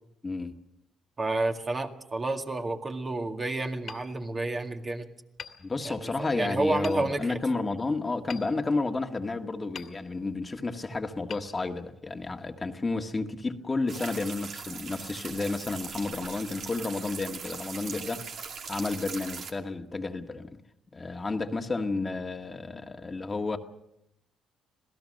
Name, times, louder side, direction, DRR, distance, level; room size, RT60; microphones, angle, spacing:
voice 1, 0.2-0.6 5.6-18.2 18.7-20.6 20.9-23.6, left 3 dB, 25° left, 4 dB, 1.7 m, -31 dB
voice 2, 1.2-5.1 5.8-7.4, right 2 dB, 30° right, 4 dB, 2.0 m, -30 dB
Hammer, 3.9-4.9 5.4-6.3 6.8-7.4 8.3-9.3 9.7-10.5 11.3-12.2, left 7 dB, 60° left, 2.2 m, -47 dB
sound 1, 13.9-19.5, right 6 dB, 65° right, 2.5 m, -40 dB
26.5 x 17.0 x 6.5 m, 0.82 s
cardioid pair, 90°, 0 cm